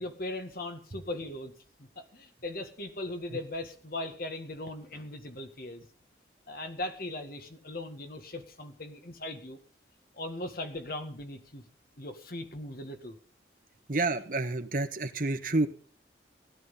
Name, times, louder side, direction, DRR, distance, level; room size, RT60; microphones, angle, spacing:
voice 1, 0.0-1.5 1.8-5.9 6.5-9.6 10.2-11.6 12.0-13.2, left 1 dB, 50° left, 7 dB, 2.0 m, -39 dB
voice 2, 13.9-15.7, right 2 dB, 50° right, 8 dB, 1.3 m, -29 dB
17.0 x 11.0 x 5.5 m, 0.43 s
head